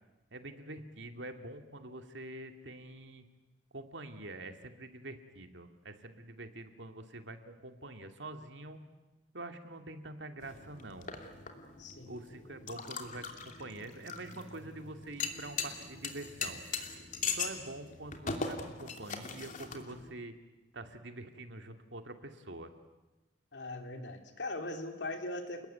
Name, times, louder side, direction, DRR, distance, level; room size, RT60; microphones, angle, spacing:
voice 1, 0.3-3.3 3.7-8.8 9.3-11.1 12.1-16.6 17.3-20.4 20.7-22.7, right 2 dB, 80° right, 6 dB, 2.4 m, -46 dB
sound 1, 10.4-20.1, left 5 dB, 45° left, 2.9 m, -40 dB
voice 2, 11.8-12.1 19.9-20.0 23.5-25.7, left 2 dB, 75° left, 5 dB, 3.1 m, -40 dB
29.5 x 20.5 x 9.3 m, 1.1 s
head